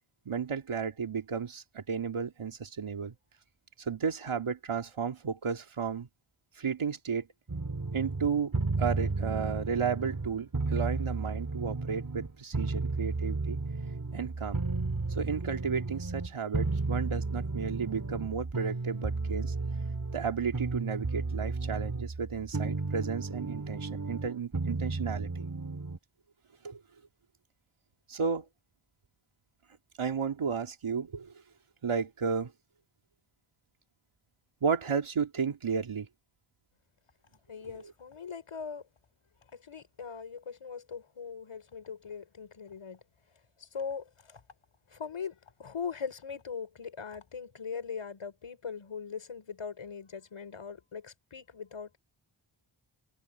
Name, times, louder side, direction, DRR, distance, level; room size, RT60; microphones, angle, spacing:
voice 1, 0.3-3.1 3.8-6.1 6.6-7.3 7.9-8.5 8.8-13.6 14.1-14.6 15.2-19.5 20.1-25.5 26.6-26.8 28.1-28.5 30.0-31.3 31.8-32.5 34.6-36.1 37.7-37.9, right 6 dB, 75° right, 2.4 m, -33 dB
sound 1, 7.5-26.0, right 3 dB, 40° right, 3.3 m, -33 dB
voice 2, 37.5-38.8 39.5-43.0 43.6-44.4 44.9-52.0, left 6 dB, 80° left, 5.3 m, -40 dB
open air
wide cardioid pair, 90°, 49 cm